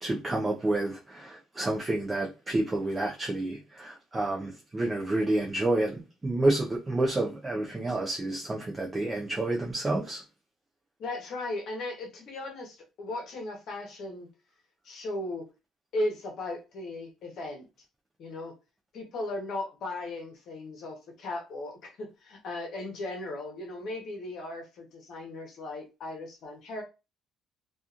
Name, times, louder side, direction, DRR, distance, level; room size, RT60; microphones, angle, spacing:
voice 1, 0.0-10.2, right 2 dB, 15° right, 0.4 m, -29 dB
voice 2, 11.0-14.3 14.8-15.5 15.9-17.6 18.2-18.5 18.9-26.8, left 2 dB, 50° left, 0.9 m, -36 dB
2.8 x 2.4 x 2.4 m
cardioid pair, 170°, 0 cm